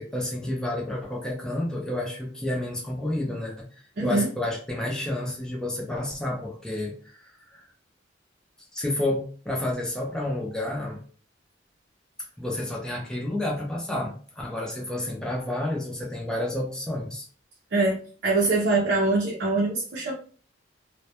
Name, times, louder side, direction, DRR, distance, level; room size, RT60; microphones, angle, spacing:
voice 1, 0.0-7.6 8.7-11.0 12.4-17.3, left 1 dB, 5° left, -2 dB, 0.5 m, -30 dB
voice 2, 4.0-4.3 17.7-18.0 18.2-20.1, right 2 dB, 55° right, -4 dB, 0.6 m, -23 dB
2.2 x 2.1 x 2.8 m, 0.42 s
head